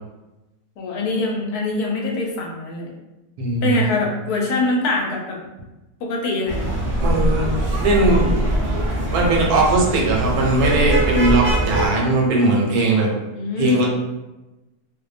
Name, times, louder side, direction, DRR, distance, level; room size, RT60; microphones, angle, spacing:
voice 1, 0.8-2.9 3.6-5.4 6.0-6.6 13.3-13.9, left 2 dB, 75° left, -1 dB, 1.1 m, -23 dB
voice 2, 3.4-4.0 7.0-7.5 7.8-8.3 9.1-13.1 13.6-13.9, right 2 dB, 80° right, -1 dB, 1.1 m, -19 dB
sound 1, 6.5-11.9, right 1 dB, 50° right, 0.6 m, -22 dB
2.6 x 2.1 x 2.4 m, 1.0 s
omnidirectional pair, 1.7 m